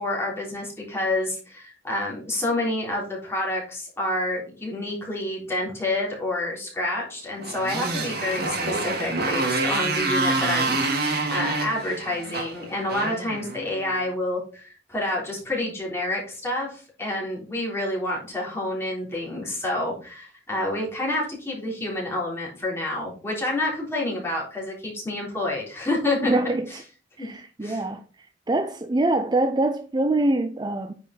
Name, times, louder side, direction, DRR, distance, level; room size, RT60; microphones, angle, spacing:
voice 1, 0.0-26.4 27.2-27.3 27.6-27.8, left 1 dB, 15° left, 3.6 m, -28 dB
Motorcycle, 7.4-13.9, right 3 dB, 55° right, 2.5 m, -27 dB
voice 2, 26.2-26.8 27.2-28.0 28.5-30.9, right 2 dB, 25° right, 0.5 m, -24 dB
9.6 x 5.3 x 4.0 m
head